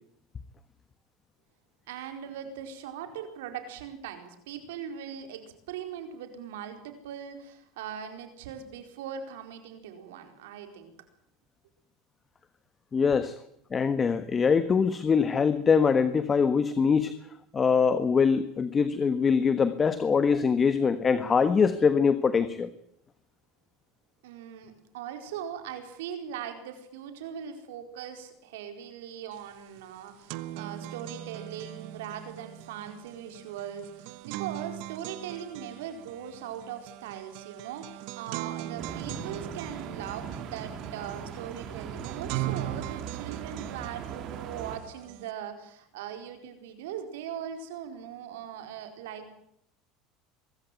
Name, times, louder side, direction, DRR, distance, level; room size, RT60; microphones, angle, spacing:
voice 1, 1.9-10.9 24.2-49.3, right 9 dB, 85° right, 7 dB, 4.4 m, -40 dB
voice 2, 12.9-13.3 13.7-17.1 17.5-22.7, left 6 dB, 25° left, 12 dB, 1.4 m, -23 dB
sound 1, 29.4-29.5 29.8-45.3, right 15 dB, 70° right, 1.1 m, -41 dB
sound 2, 38.8-44.8, right 7 dB, 50° right, 3.5 m, -39 dB
23.5 x 14.0 x 9.3 m, 0.75 s
supercardioid pair, 105°, 0 cm